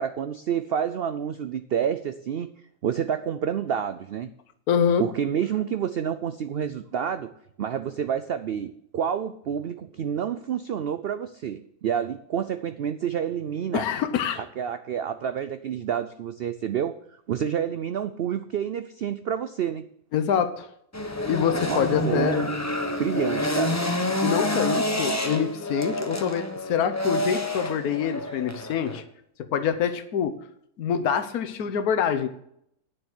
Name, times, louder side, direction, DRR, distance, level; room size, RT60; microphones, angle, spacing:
voice 1, 0.0-2.5 2.8-4.3 5.0-7.3 7.6-13.9 14.4-17.0 17.3-19.8 21.7-22.5 23.0-23.8, right 8 dB, 75° right, 11 dB, 0.5 m, -29 dB
voice 2, 4.7-5.1 13.7-14.4 20.1-20.7 21.3-22.4 24.2-29.0 29.5-30.4 30.8-32.3, left 8 dB, 70° left, 9 dB, 1.4 m, -25 dB
sound 1, 20.9-29.0, left 1 dB, 15° left, 0.8 m, -28 dB
9.7 x 7.0 x 7.7 m, 0.72 s
omnidirectional pair, 1.6 m